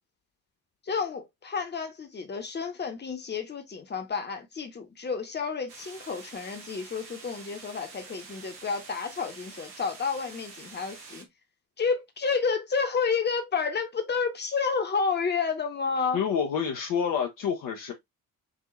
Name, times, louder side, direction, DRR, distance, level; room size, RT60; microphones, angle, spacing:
voice 1, 0.8-11.3 11.8-16.2, left 5 dB, 25° left, 1.1 m, -30 dB
sound 1, 5.7-11.2, right 4 dB, 80° right, 0.9 m, -47 dB
voice 2, 16.1-17.9, left 7 dB, 45° left, 0.8 m, -28 dB
5.0 x 2.7 x 2.5 m
figure-of-eight pair, 45°, 43 cm